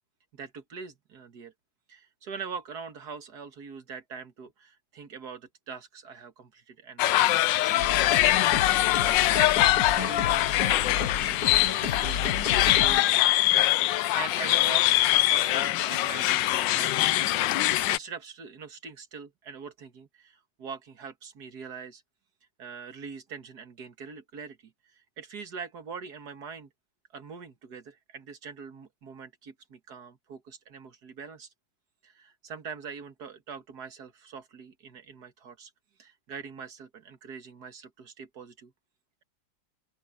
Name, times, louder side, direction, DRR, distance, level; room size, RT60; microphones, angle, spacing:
voice 1, 0.3-1.5 1.9-8.3 9.1-13.4 13.8-17.2 17.6-22.0 22.6-26.7 27.1-31.5 32.0-35.7 36.0-38.7, right 6 dB, 60° right, 2.3 m, -43 dB
sound 1, 7.0-18.0, left 15 dB, 80° left, 1.3 m, -23 dB
sound 2, 7.8-13.0, left 6 dB, 55° left, 1.8 m, -32 dB
open air
omnidirectional pair, 2.0 m